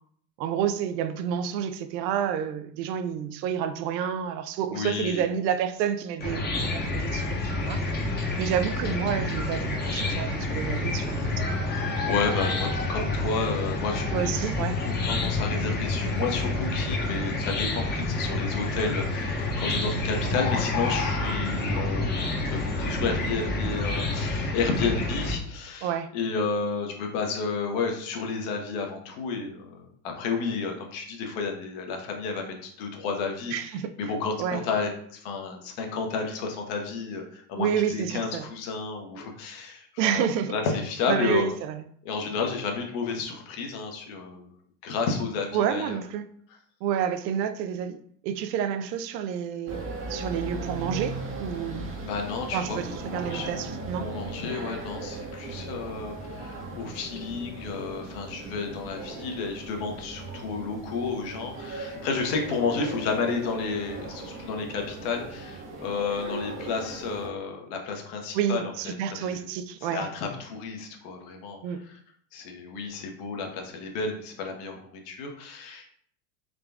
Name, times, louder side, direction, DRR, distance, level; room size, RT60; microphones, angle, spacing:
voice 1, 0.4-7.3 7.6-7.8 8.4-11.3 14.1-14.8 25.8-26.1 33.5-33.9 34.4-34.6 37.6-38.5 40.0-40.5 41.1-41.8 45.5-46.2 46.8-48.0 48.2-49.8 50.1-51.9 52.5-52.9 53.1-54.1 68.3-70.1 71.6-71.8, right 9 dB, 85° right, 0.6 m, -29 dB
voice 2, 4.7-5.3 12.1-14.0 14.8-33.7 34.0-41.5 42.0-44.5 44.8-46.0 52.0-52.8 53.0-53.5 54.0-69.4 69.8-71.6 71.9-72.0 72.3-75.9, left 4 dB, 60° left, 1.0 m, -31 dB
Chicken rooster / Cricket, 6.2-25.3, left 2 dB, 20° left, 0.8 m, -28 dB
sound 1, 49.7-67.3, right 3 dB, 25° right, 0.6 m, -38 dB
3.8 x 2.3 x 3.4 m
supercardioid pair, 120°, 49 cm